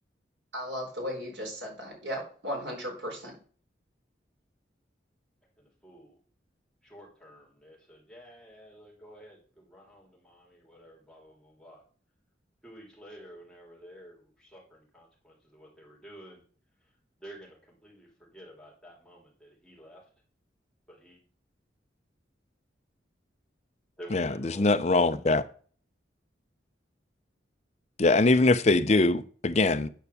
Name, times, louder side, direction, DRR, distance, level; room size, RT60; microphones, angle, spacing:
voice 1, 0.5-3.3, equal, 80° right, 4.1 m, -36 dB
voice 2, 5.6-6.2 6.8-11.8 12.6-16.4 17.2-20.0 20.9-21.2 24.0-25.0, equal, 5° left, 3.5 m, -51 dB
voice 3, 24.1-25.4 28.0-29.9, left 2 dB, 40° left, 0.6 m, -22 dB
9.5 x 4.7 x 6.9 m
head